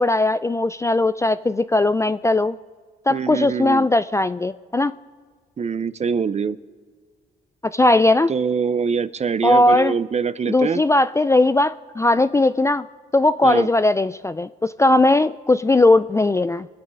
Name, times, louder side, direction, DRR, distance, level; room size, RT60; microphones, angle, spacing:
voice 1, 0.0-2.6 3.1-4.9 7.7-8.3 9.4-9.9 10.5-12.9 13.1-16.7, left 2 dB, 15° left, 13 dB, 0.3 m, -18 dB
voice 2, 3.1-3.9 5.6-6.6 8.3-10.8 13.4-13.7, right 6 dB, 35° right, 16 dB, 0.6 m, -24 dB
25.0 x 8.9 x 5.4 m, 1.5 s
cardioid pair, 90°, 20 cm